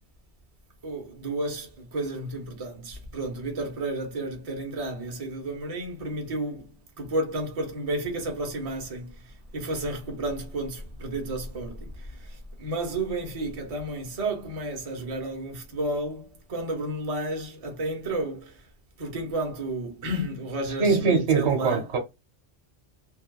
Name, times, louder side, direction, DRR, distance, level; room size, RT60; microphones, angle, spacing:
voice 1, 0.8-6.7 7.0-18.6 19.0-21.9, right 1 dB, 35° right, 0.8 m, -32 dB
voice 2, 20.8-22.0, right 5 dB, 80° right, 1.1 m, -22 dB
2.7 x 2.3 x 2.2 m
omnidirectional pair, 1.1 m